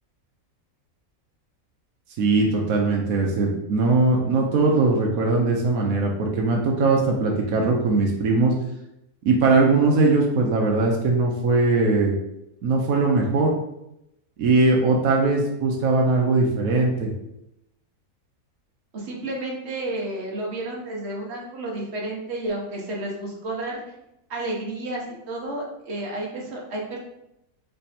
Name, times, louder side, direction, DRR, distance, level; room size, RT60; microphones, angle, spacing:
voice 1, 2.2-8.5 9.2-12.1 12.6-13.5 14.4-17.1, right 3 dB, 85° right, 0 dB, 1.2 m, -20 dB
voice 2, 18.9-23.8 24.3-27.0, right 2 dB, 55° right, -2 dB, 1.3 m, -31 dB
3.4 x 3.3 x 4.2 m, 0.84 s
omnidirectional pair, 1.4 m